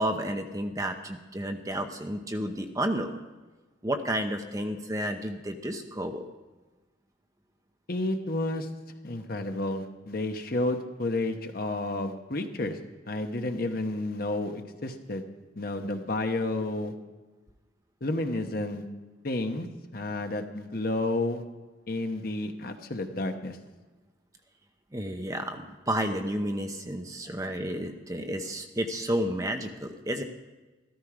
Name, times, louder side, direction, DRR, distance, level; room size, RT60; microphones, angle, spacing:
voice 1, 0.0-3.1 3.8-6.2 24.9-30.2, right 1 dB, 20° right, 5 dB, 0.8 m, -31 dB
voice 2, 7.9-8.7 9.0-12.8 13.1-15.2 15.6-16.9 18.0-18.8 19.2-19.7 19.9-21.4 21.9-23.6, left 2 dB, 50° left, 5 dB, 1.1 m, -31 dB
13.5 x 13.5 x 4.9 m, 1.2 s
head